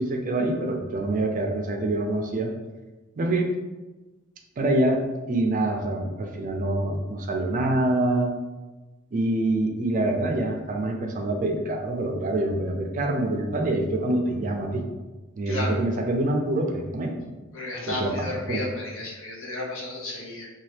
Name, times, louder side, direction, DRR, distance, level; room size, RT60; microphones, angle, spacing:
voice 1, 0.0-2.5 3.2-3.5 4.6-5.0 5.3-8.3 9.1-14.8 15.4-17.1 17.9-18.7, right 1 dB, 40° right, 3 dB, 0.4 m, -25 dB
voice 2, 15.5-15.8 17.5-20.5, left 2 dB, 70° left, -2 dB, 0.7 m, -33 dB
2.8 x 2.3 x 3.3 m, 1.2 s
head